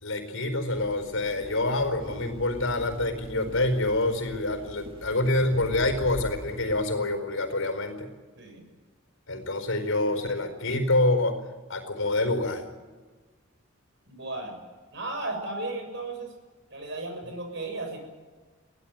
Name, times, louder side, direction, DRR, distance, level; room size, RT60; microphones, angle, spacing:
voice 1, 0.0-8.1 9.3-11.4 11.7-12.7, left 2 dB, 75° left, 8 dB, 4.6 m, -26 dB
sound 1, 0.7-6.8, equal, 25° right, 2.1 m, -43 dB
voice 2, 8.4-8.7 14.1-14.6 14.9-16.3 16.7-18.0, right 2 dB, 60° right, 5 dB, 6.8 m, -35 dB
24.5 x 17.0 x 9.1 m, 1.4 s
head